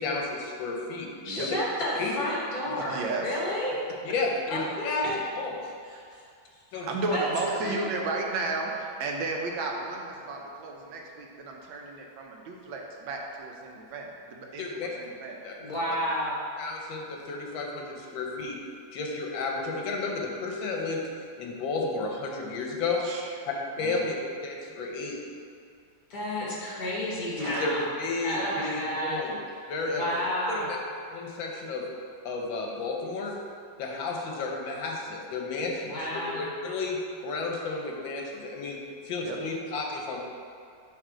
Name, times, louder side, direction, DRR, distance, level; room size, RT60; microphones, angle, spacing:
voice 1, 0.0-1.1 1.4-1.5 2.0-2.1 4.0-5.1 5.3-5.5 6.7-6.9 14.6-14.9 15.4-15.5 16.6-18.6 18.9-21.0 21.4-23.1 23.5-24.2 24.4-25.2 27.4-29.4 29.7-30.0 30.5-30.8 31.1-31.9 32.2-33.3 33.8-35.9 36.3-38.8 39.0-40.3, left 3 dB, 80° left, 0 dB, 1.5 m, -32 dB
voice 2, 1.2-3.8 4.5-5.1 5.9-6.2 7.1-7.3 7.6-7.8 15.6-16.4 26.1-27.9 28.2-29.2 29.9-30.7 35.8-36.4, equal, 55° left, -5 dB, 1.7 m, -31 dB
voice 3, 2.7-3.4 5.0-5.1 6.7-15.4 23.0-23.4 23.8-24.1 27.4-27.6 28.3-28.6 39.2-39.4, right 3 dB, 85° right, 1 dB, 1.5 m, -34 dB
7.2 x 3.1 x 4.9 m, 2.4 s
omnidirectional pair, 2.1 m